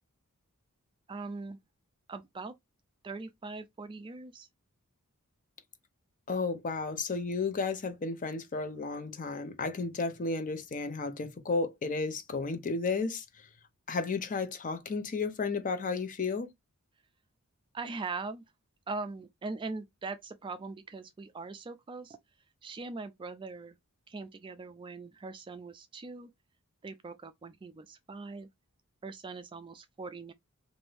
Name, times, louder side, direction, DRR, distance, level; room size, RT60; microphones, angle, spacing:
voice 1, 1.1-1.6 2.1-2.5 3.0-4.5 17.7-18.4 18.9-22.2 22.6-23.8 24.1-26.3 26.8-28.5 29.0-30.3, right 3 dB, 20° right, 0.3 m, -41 dB
voice 2, 6.3-13.2 13.9-16.5, left 4 dB, 35° left, 0.5 m, -33 dB
2.6 x 2.6 x 3.3 m
head